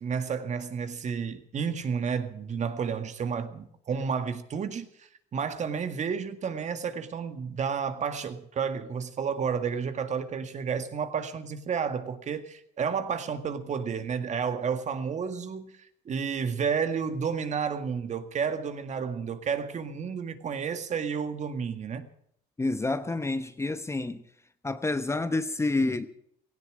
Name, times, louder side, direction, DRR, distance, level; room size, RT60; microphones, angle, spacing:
voice 1, 0.0-15.7 16.1-22.1, right 6 dB, 45° right, 2.0 m, -31 dB
voice 2, 22.6-24.2 24.6-26.1, left 2 dB, 15° left, 1.0 m, -28 dB
17.5 x 16.5 x 5.0 m
cardioid pair, 110°, 17 cm